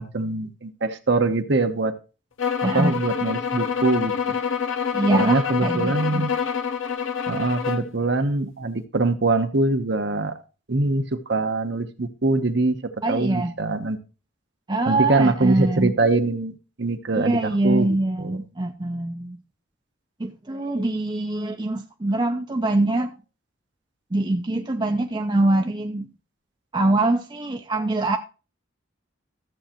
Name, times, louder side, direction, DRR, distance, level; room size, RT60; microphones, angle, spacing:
voice 1, 0.0-1.9 2.7-4.3 5.1-6.3 7.3-10.3 10.7-14.0 14.9-18.4, right 2 dB, 55° right, 0.9 m, -23 dB
sound 1, 2.4-7.9, left 6 dB, 75° left, 0.8 m, -26 dB
voice 2, 2.6-2.9 4.9-6.3 13.0-13.5 14.7-15.9 17.1-19.4 20.2-23.1 24.1-26.1 26.7-28.2, right 2 dB, 20° right, 0.5 m, -23 dB
13.5 x 7.7 x 2.9 m
head